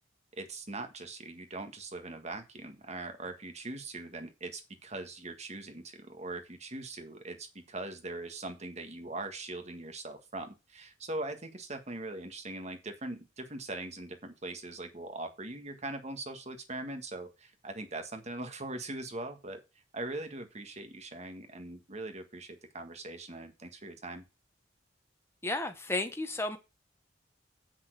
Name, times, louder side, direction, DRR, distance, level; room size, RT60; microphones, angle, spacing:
voice 1, 0.3-19.6 19.9-24.2, right 2 dB, 35° right, 1.7 m, -41 dB
voice 2, 25.4-26.6, left 2 dB, 15° left, 1.2 m, -33 dB
7.3 x 6.2 x 6.4 m
head